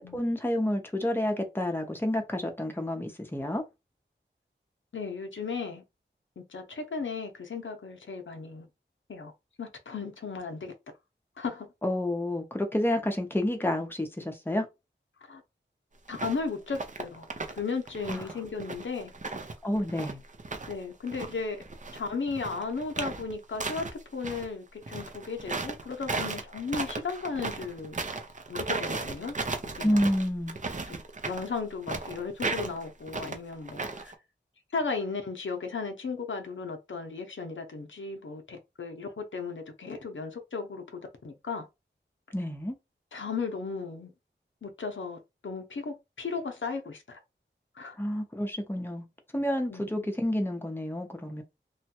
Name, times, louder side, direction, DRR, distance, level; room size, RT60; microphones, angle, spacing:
voice 1, 0.1-3.6 11.8-14.7 18.1-18.2 19.6-20.2 29.8-30.6 42.3-42.7 48.0-49.0 49.3-51.4, left 1 dB, 10° left, 0.7 m, -29 dB
voice 2, 4.9-5.8 6.4-8.7 9.1-9.3 9.6-10.7 11.4-11.7 15.3-15.4 16.1-17.3 17.5-19.1 20.7-21.6 21.9-28.0 28.5-29.4 29.8-30.0 30.8-31.0 31.2-34.1 34.7-41.7 43.1-44.1 44.6-47.2 47.8-48.0 49.7-50.1, left 4 dB, 85° left, 0.6 m, -35 dB
sound 1, 16.1-16.4 16.7-17.6 17.9-20.7 21.1-24.5 24.8-34.1, right 3 dB, 40° right, 0.5 m, -35 dB
3.1 x 2.2 x 2.8 m
wide cardioid pair, 65°, 20 cm